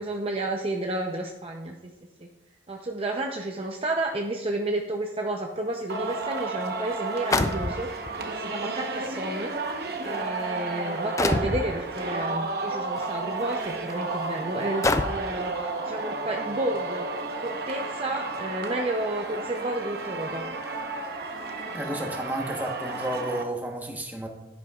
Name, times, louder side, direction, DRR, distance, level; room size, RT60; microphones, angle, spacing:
voice 1, 0.0-1.7 2.2-2.3 2.7-9.5 10.0-20.4, right 1 dB, 30° right, 2 dB, 0.6 m, -31 dB
Singing, 5.9-23.4, right 3 dB, 55° right, 1.0 m, -32 dB
sound 1, 6.2-6.3 7.3-8.1 9.0-9.1 9.9-10.2 11.2-11.7 13.0-13.1 13.7-13.8 14.8-15.4, left 2 dB, 15° left, 0.3 m, -26 dB
voice 2, 21.7-24.3, right 1 dB, 10° right, 1 dB, 1.1 m, -32 dB
10.5 x 10.5 x 2.4 m, 1.0 s
head